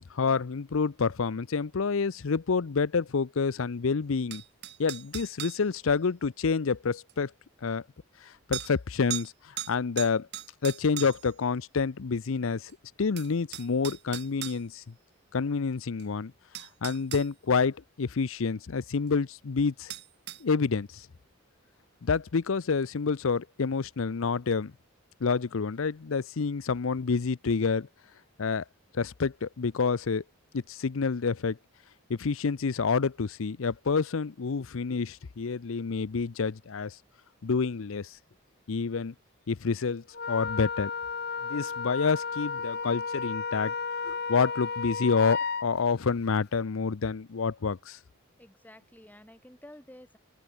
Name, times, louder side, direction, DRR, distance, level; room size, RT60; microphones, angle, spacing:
voice 1, 0.1-4.4 4.8-7.3 7.6-7.8 8.2-10.3 10.6-12.7 13.0-14.9 15.3-16.3 16.8-19.9 20.4-21.1 22.0-24.7 25.2-27.9 28.4-28.6 28.9-30.2 30.5-31.6 32.1-37.0 37.4-38.2 38.7-39.1 39.5-40.9 41.4-43.7 44.0-48.0, left 5 dB, 70° left, 0.6 m, -28 dB
sound 1, 4.3-5.6 7.1-7.2 8.5-8.7 9.1-9.3 9.6-11.3 12.7-12.8 13.2-14.6 16.0-16.1 16.6-17.3 19.9-20.4, right 12 dB, 50° right, 1.3 m, -38 dB
Wind instrument woodwind instrument, 40.1-45.7, left 5 dB, 50° left, 2.8 m, -33 dB
voice 2, 48.4-50.2, left 1 dB, 10° left, 3.5 m, -51 dB
open air
head